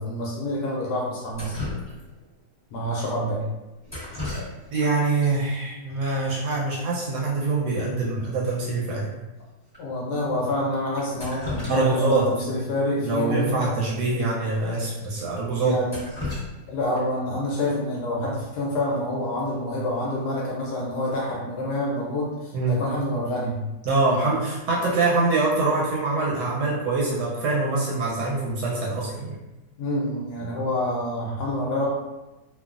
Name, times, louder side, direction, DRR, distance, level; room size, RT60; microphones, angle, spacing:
voice 1, 0.0-1.7 2.7-3.4 9.8-13.6 15.6-16.0 16.7-22.3 22.7-23.6 29.8-31.9, left 1 dB, 70° left, -4 dB, 1.1 m, -27 dB
Drip, 1.3-2.3 3.8-4.9 5.2-5.3 6.2-6.3 6.6-6.8 7.1-7.2 7.7-7.8 8.2-8.3 8.9-9.0 9.7-9.8 11.0-12.2 12.5-12.6 14.0-14.1 14.5-14.6 15.0-15.1 15.6-17.2 19.2-19.5 19.9-20.3, left 2 dB, 20° left, 0.6 m, -35 dB
voice 2, 4.7-9.1 11.7-12.3 13.0-15.8 22.5-22.8 23.8-29.4, right 3 dB, 70° right, -5 dB, 1.0 m, -24 dB
3.0 x 2.3 x 2.4 m, 1.0 s
omnidirectional pair, 2.0 m